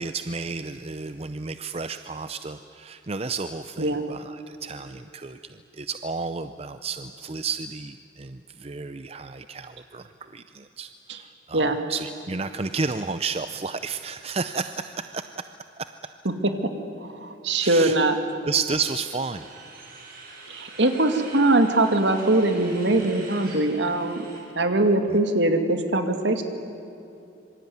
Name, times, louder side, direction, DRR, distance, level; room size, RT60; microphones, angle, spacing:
voice 1, 0.0-15.4 15.8-15.9 17.6-18.0 18.5-19.4 25.1-25.2, right 4 dB, 30° right, 10 dB, 0.6 m, -32 dB
voice 2, 17.1-18.2 20.5-24.3 24.6-26.4, right 2 dB, 65° right, 6 dB, 2.4 m, -22 dB
sound 1, 19.3-24.4, right 3 dB, 50° right, 6.2 m, -44 dB
26.0 x 23.5 x 9.5 m, 2.7 s
head